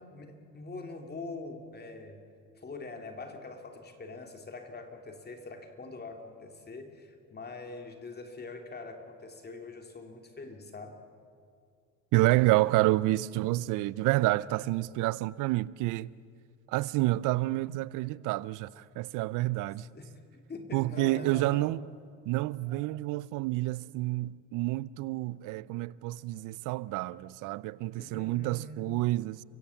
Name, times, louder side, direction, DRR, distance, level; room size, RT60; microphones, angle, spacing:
voice 1, 0.0-2.2 2.6-11.0 19.9-20.2 20.5-21.8 28.0-28.9, left 3 dB, 30° left, 2.9 m, -43 dB
voice 2, 12.1-16.1 16.7-19.9 20.7-21.8 22.3-29.4, right 18 dB, 80° right, 0.6 m, -29 dB
29.5 x 16.0 x 7.2 m
supercardioid pair, 85°, 31 cm